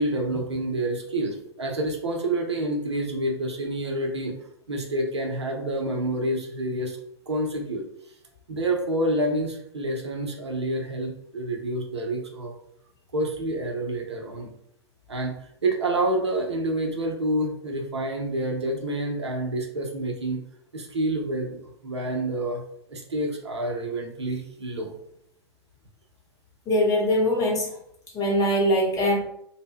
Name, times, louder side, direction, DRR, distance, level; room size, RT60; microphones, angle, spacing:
voice 1, 0.0-4.3 4.7-7.0 7.3-7.9 8.5-12.5 13.1-14.5 15.1-15.3 15.6-20.4 20.7-22.6 22.9-24.9, right 1 dB, 85° right, 2 dB, 0.6 m, -28 dB
voice 2, 26.7-27.7 28.1-29.2, equal, 25° left, -3 dB, 0.9 m, -22 dB
2.1 x 2.0 x 3.3 m, 0.72 s
figure-of-eight pair, 105°, 14 cm